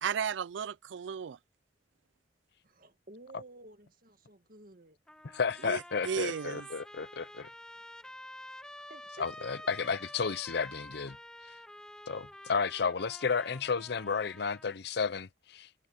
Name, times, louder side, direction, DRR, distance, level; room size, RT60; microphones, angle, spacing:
voice 1, 0.0-1.4 5.6-6.6, right 7 dB, 75° right, 0.4 m, -34 dB
voice 2, 2.6-5.0 8.9-9.3 9.6-9.7, right 2 dB, 50° right, 2.0 m, -53 dB
Trumpet, 5.1-14.8, left 1 dB, 5° left, 0.6 m, -49 dB
voice 3, 5.2-7.5 9.2-11.2 12.1-15.9, left 5 dB, 60° left, 0.6 m, -32 dB
head